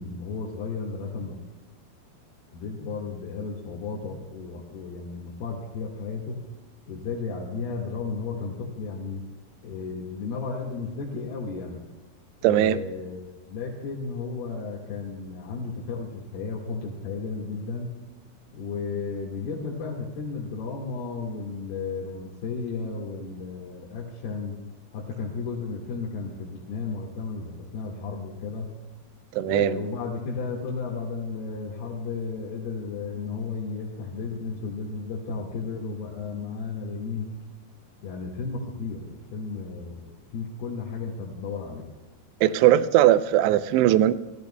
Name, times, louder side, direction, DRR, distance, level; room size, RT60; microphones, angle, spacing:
voice 1, 0.0-1.4 2.5-6.4 6.9-9.2 9.6-11.9 12.4-17.9 18.5-24.5 24.9-28.7 29.4-37.3 38.0-41.9, left 4 dB, 65° left, -4 dB, 3.5 m, -34 dB
voice 2, 12.4-12.8 29.3-29.8 42.4-44.1, right 12 dB, 85° right, 14 dB, 2.7 m, -19 dB
25.5 x 14.5 x 2.2 m, 1.2 s
omnidirectional pair, 5.0 m